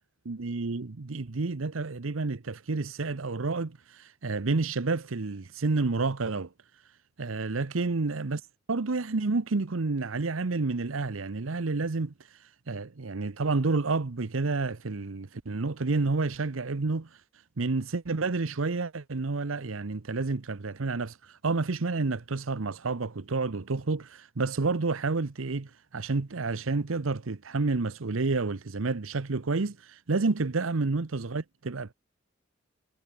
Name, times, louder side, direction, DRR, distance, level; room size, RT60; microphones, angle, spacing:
voice 1, 0.2-6.5 7.2-8.4 8.7-12.4 12.7-17.1 17.6-31.9, right 3 dB, 85° right, 0.9 m, -30 dB
head